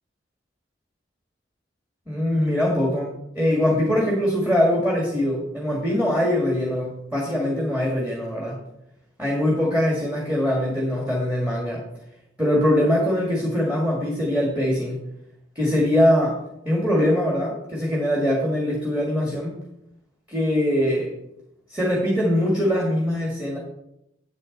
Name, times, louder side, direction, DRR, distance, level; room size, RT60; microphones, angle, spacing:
voice 1, 2.1-8.6 9.2-11.8 12.4-15.0 15.6-16.3 16.7-19.6 20.3-21.1 21.7-23.6, left 1 dB, 10° right, -3 dB, 1.9 m, -22 dB
9.1 x 8.4 x 3.9 m, 0.81 s
head